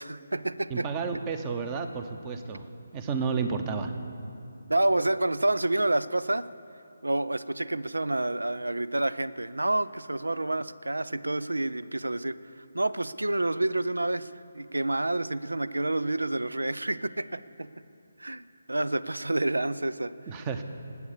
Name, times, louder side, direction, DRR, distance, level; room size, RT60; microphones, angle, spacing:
voice 1, 0.0-0.9 4.7-6.5 7.0-12.4 12.7-17.7 18.2-20.1, right 2 dB, 85° right, 16 dB, 0.5 m, -28 dB
voice 2, 0.7-2.6 2.9-3.9 20.3-20.6, right 5 dB, 20° right, 8 dB, 0.9 m, -31 dB
19.5 x 8.6 x 6.8 m, 2.6 s
figure-of-eight pair, 150°, 0 cm